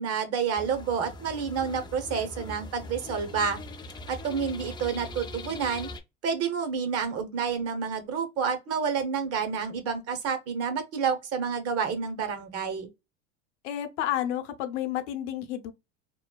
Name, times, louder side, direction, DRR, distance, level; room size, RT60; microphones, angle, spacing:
voice 1, 0.0-3.6 4.1-5.9 6.2-12.9, right 6 dB, 45° right, 0.8 m, -29 dB
sound 1, 0.6-6.0, left 1 dB, 15° left, 0.3 m, -41 dB
voice 2, 13.6-15.7, left 12 dB, 85° left, 0.6 m, -31 dB
3.0 x 2.1 x 2.2 m
supercardioid pair, 100°, 34 cm